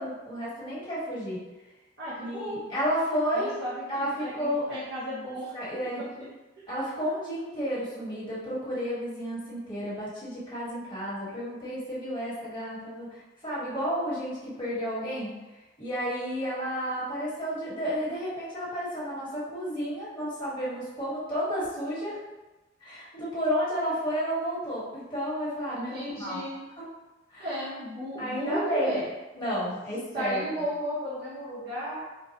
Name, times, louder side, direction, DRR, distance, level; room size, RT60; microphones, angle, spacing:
voice 1, 0.0-1.4 2.2-3.6 3.9-4.8 5.5-6.0 6.7-15.4 15.8-22.2 22.8-26.4 26.8-26.9 27.3-27.5 28.2-29.0 29.3-30.4, equal, 25° left, -9 dB, 1.4 m, -31 dB
voice 2, 2.0-2.6 3.3-5.6 5.9-6.3 6.5-6.6 25.8-26.6 27.4-29.1 29.6-29.7 30.1-32.0, equal, 60° right, -10 dB, 0.9 m, -34 dB
4.4 x 2.2 x 2.9 m, 1.1 s
head